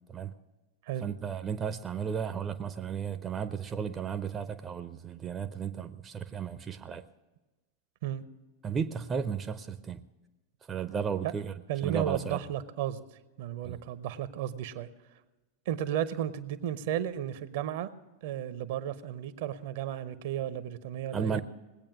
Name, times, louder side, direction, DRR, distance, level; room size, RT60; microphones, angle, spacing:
voice 1, 1.0-7.0 8.6-10.0 10.7-11.5 11.8-12.4 13.6-13.8 21.1-21.4, right 7 dB, 20° right, 0.6 m, -34 dB
voice 2, 11.7-13.0 13.4-14.9 15.7-17.9 18.2-21.4, right 10 dB, 55° right, 0.8 m, -33 dB
20.0 x 8.8 x 6.1 m
figure-of-eight pair, 90°, 0 cm